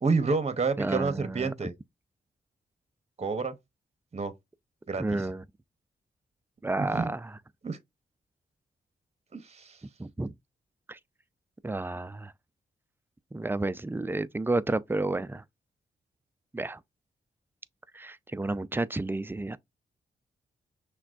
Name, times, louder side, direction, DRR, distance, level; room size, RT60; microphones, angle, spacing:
voice 1, 0.0-1.7 3.2-3.6 4.1-4.3 4.9-5.0 6.8-7.1 7.6-7.8 9.3-9.8, right 4 dB, 30° right, 0.8 m, -29 dB
voice 2, 0.8-1.5 5.0-5.4 6.6-7.3 10.0-10.3 10.9-11.0 11.6-12.3 13.3-15.4 16.5-16.8 17.9-19.6, right 2 dB, 10° right, 0.4 m, -31 dB
5.9 x 2.3 x 2.5 m
supercardioid pair, 45°, 21 cm